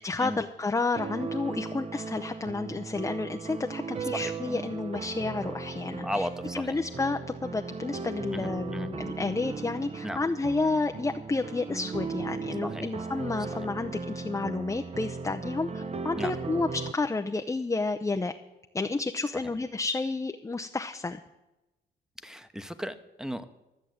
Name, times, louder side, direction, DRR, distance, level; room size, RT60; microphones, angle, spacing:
voice 1, 0.0-6.3 6.5-18.3 18.7-21.2, left 3 dB, 15° left, 6 dB, 0.6 m, -31 dB
sound 1, 0.9-16.9, right 4 dB, 30° right, 0.8 m, -37 dB
voice 2, 6.0-6.6 8.3-8.9 10.0-10.2 12.6-12.8 16.2-16.3 22.2-23.5, equal, 5° right, 11 dB, 1.0 m, -35 dB
13.0 x 7.3 x 7.9 m, 0.99 s
cardioid pair, 90°, 20 cm